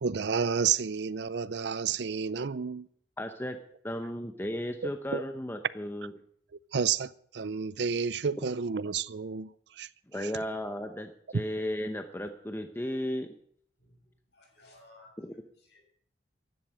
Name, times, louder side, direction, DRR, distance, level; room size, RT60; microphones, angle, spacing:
voice 1, 0.0-2.9 5.1-5.2 6.7-9.9, right 6 dB, 60° right, 0.5 m, -30 dB
voice 2, 3.2-3.6 3.8-6.1 10.1-13.3 15.2-15.3, equal, 10° left, 0.8 m, -35 dB
voice 3, 13.8-15.8, left 2 dB, 65° left, 6.4 m, -59 dB
15.5 x 11.0 x 6.3 m
head